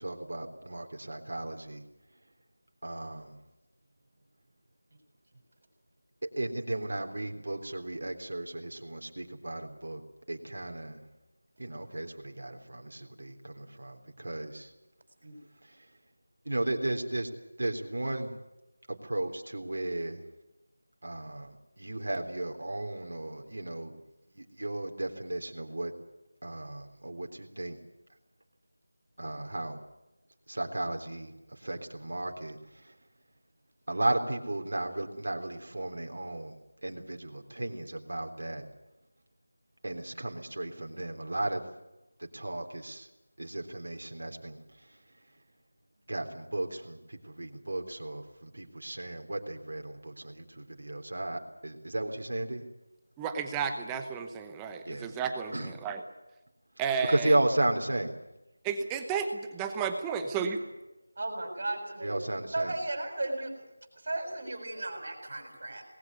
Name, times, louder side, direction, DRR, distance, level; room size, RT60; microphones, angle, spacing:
voice 1, 0.0-1.8 2.8-3.3 6.4-10.0 10.3-11.0 11.6-14.7 16.5-17.3 17.6-18.3 18.9-20.2 21.0-23.9 24.4-25.9 26.4-27.8 29.2-29.8 30.5-31.3 31.6-32.6 32.8-32.9 33.9-36.5 36.8-38.6 39.8-41.6 42.3-43.1 43.4-44.6 46.1-52.6 54.9-55.1 55.5-55.7 57.1-58.2 62.0-62.7, right 1 dB, 65° right, 4 dB, 3.6 m, -34 dB
voice 2, 53.2-56.0 56.8-57.4 58.6-60.6, right 6 dB, 5° right, 6 dB, 0.9 m, -32 dB
voice 3, 61.2-62.1 62.5-63.5 64.0-65.8, right 2 dB, 45° right, 5 dB, 6.9 m, -35 dB
20.5 x 17.0 x 9.6 m, 0.99 s
figure-of-eight pair, 175°, 0 cm